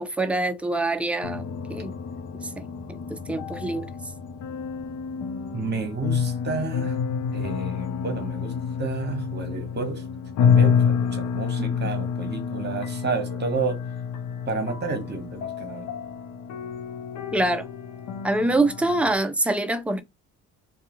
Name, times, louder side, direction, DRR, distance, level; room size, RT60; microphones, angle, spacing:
voice 1, 0.0-1.4 1.7-1.9 2.9-3.9 17.3-17.7 18.2-20.0, right 2 dB, 5° right, 0.4 m, -25 dB
sound 1, 1.2-19.1, left 7 dB, 75° left, 0.7 m, -28 dB
voice 2, 5.5-7.0 7.3-10.0 10.4-13.8 14.5-15.9, right 4 dB, 35° right, 1.0 m, -31 dB
2.3 x 2.3 x 3.0 m
cardioid pair, 90°, 30 cm